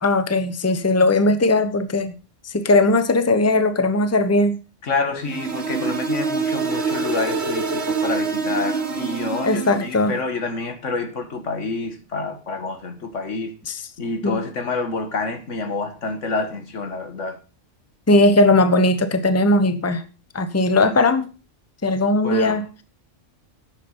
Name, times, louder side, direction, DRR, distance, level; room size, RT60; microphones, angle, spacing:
voice 1, 0.0-2.2 2.4-4.6 9.4-10.1 13.7-13.8 14.2-14.4 18.1-20.0 20.3-21.3 21.8-22.6, left 2 dB, 15° left, 0.9 m, -18 dB
voice 2, 4.8-13.6 14.0-17.4 22.2-22.6, left 3 dB, 75° left, 2.0 m, -28 dB
sound 1, 5.2-10.0, right 4 dB, 60° right, 2.1 m, -25 dB
11.0 x 8.0 x 5.6 m
omnidirectional pair, 1.3 m